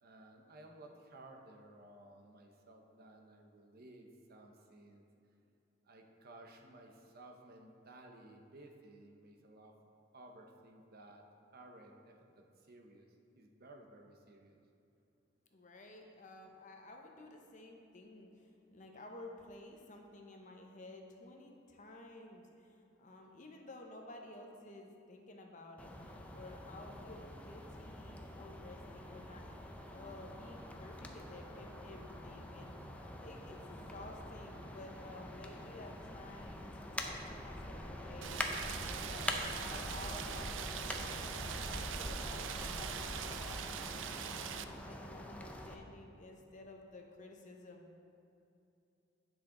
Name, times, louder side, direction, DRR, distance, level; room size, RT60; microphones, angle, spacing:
voice 1, 0.0-5.1 5.8-9.7 10.1-11.2 11.5-13.1 13.3-14.6, right 2 dB, 55° right, 2 dB, 0.8 m, -57 dB
voice 2, 15.5-25.9 26.3-29.5 29.9-32.7 33.2-38.5 39.0-41.3 41.6-44.0 44.4-47.9, left 2 dB, 40° left, 2 dB, 0.8 m, -53 dB
sound 1, 25.8-45.7, left 1 dB, 5° left, 0.5 m, -44 dB
Rain, 38.2-44.6, right 9 dB, 75° right, 0.4 m, -43 dB
10.0 x 6.0 x 3.8 m, 2.7 s
head